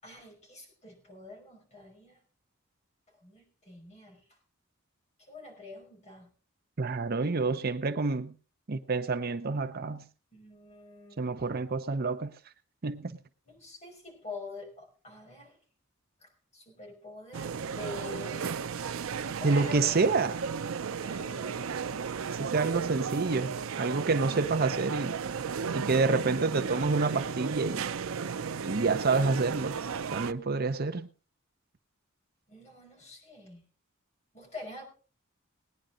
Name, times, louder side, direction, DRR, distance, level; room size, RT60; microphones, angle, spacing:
voice 1, 0.0-2.2 3.2-4.2 5.3-6.3 10.3-11.2 13.5-15.6 16.2-18.6 19.4-20.1 21.0-22.4 32.5-33.6 34.3-34.8, left 2 dB, 35° left, 5.7 m, -46 dB
voice 2, 6.8-8.3 8.7-10.0 11.2-12.3 12.8-13.1 19.4-20.3 22.3-25.1 25.7-27.9 28.6-29.8 30.1-31.1, right 3 dB, 50° right, 0.7 m, -28 dB
sound 1, 17.3-30.3, right 6 dB, 85° right, 0.5 m, -34 dB
18.5 x 10.0 x 3.8 m
head